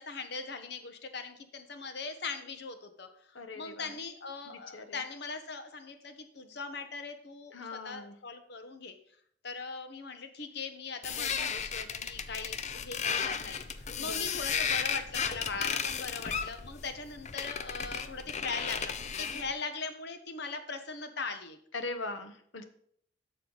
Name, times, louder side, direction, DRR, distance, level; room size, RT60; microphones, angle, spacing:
voice 1, 0.0-9.0 9.4-13.6 14.0-21.6, left 4 dB, 60° left, 8 dB, 1.1 m, -40 dB
voice 2, 3.3-4.0 4.5-5.0 7.5-8.2 14.0-14.4 21.7-22.6, left 3 dB, 85° left, 9 dB, 1.0 m, -41 dB
sound 1, 11.0-19.5, left 6 dB, 40° left, 0.5 m, -34 dB
12.0 x 6.7 x 4.0 m, 0.64 s
head